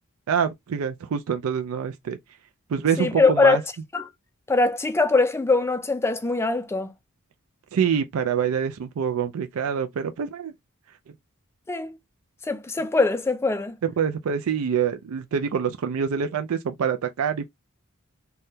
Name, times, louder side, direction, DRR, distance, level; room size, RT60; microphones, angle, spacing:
voice 1, 0.3-2.2 2.7-3.6 7.7-10.5 13.8-17.4, right 7 dB, 70° right, 0.4 m, -25 dB
voice 2, 3.0-3.6 3.9-4.1 4.5-6.9 11.7-12.0 12.4-13.8, left 3 dB, 10° left, 0.3 m, -22 dB
3.4 x 2.2 x 2.7 m
head